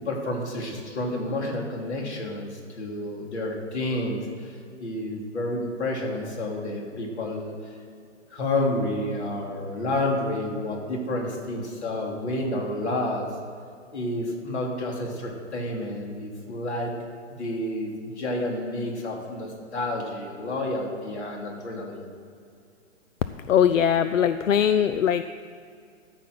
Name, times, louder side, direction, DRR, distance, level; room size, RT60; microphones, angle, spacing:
voice 1, 0.0-7.7 8.3-13.3 13.9-16.9 17.4-22.0, left 1 dB, 60° left, 0 dB, 3.2 m, -30 dB
voice 2, 23.5-25.2, left 9 dB, 85° left, 12 dB, 0.6 m, -21 dB
13.5 x 6.0 x 7.8 m, 2.4 s
hypercardioid pair, 170°, 37 cm